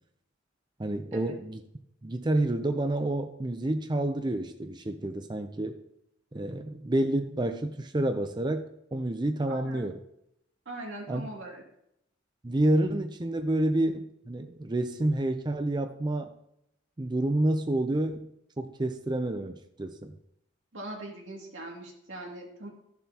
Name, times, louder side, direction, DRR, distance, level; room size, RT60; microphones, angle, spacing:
voice 1, 0.8-1.6 2.0-5.8 6.3-10.0 11.1-11.3 12.4-16.3 17.0-18.3 18.6-20.1, right 1 dB, 25° right, 6 dB, 0.6 m, -29 dB
voice 2, 9.4-9.9 10.7-11.6 20.7-22.7, right 1 dB, 90° right, -1 dB, 2.5 m, -41 dB
13.5 x 7.1 x 2.9 m, 0.78 s
head